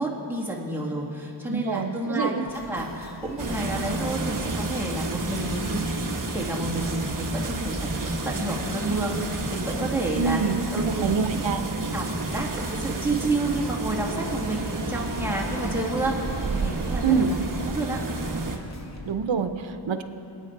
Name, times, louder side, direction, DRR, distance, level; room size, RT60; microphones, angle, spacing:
voice 1, 0.0-6.0 6.3-11.1 11.9-17.4 17.7-18.0, right 2 dB, 5° right, -4 dB, 2.2 m, -30 dB
voice 2, 1.5-2.4 10.1-11.6 17.0-17.4 19.0-20.0, right 6 dB, 70° right, 8 dB, 0.9 m, -26 dB
sound 1, 2.5-19.1, left 2 dB, 35° left, 1.1 m, -41 dB
sound 2, 3.4-18.6, right 2 dB, 40° right, 1.3 m, -30 dB
25.5 x 8.9 x 4.7 m, 2.9 s
wide cardioid pair, 115°, 48 cm